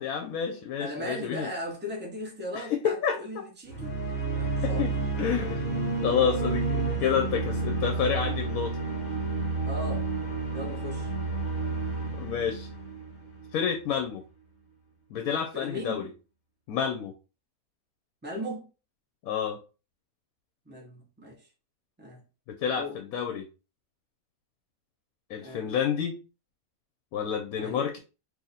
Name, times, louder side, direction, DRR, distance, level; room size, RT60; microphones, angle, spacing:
voice 1, 0.0-1.5 2.5-3.4 4.6-4.9 5.2-5.6 6.0-8.7 12.2-12.7 13.5-14.2 15.1-16.1 16.7-17.1 19.3-19.6 22.5-23.5 25.3-26.2 27.1-28.0, left 7 dB, 80° left, 1.0 m, -29 dB
voice 2, 0.8-4.0 4.4-4.9 6.9-7.0 7.9-8.1 9.6-10.1 10.5-11.1 15.5-16.1 18.2-18.7 20.7-21.5 22.0-22.2 22.7-23.0 25.4-25.6 27.6-27.9, equal, 10° right, 0.7 m, -38 dB
sound 1, 3.7-13.7, right 3 dB, 40° left, 1.1 m, -30 dB
2.8 x 2.7 x 4.0 m
omnidirectional pair, 1.5 m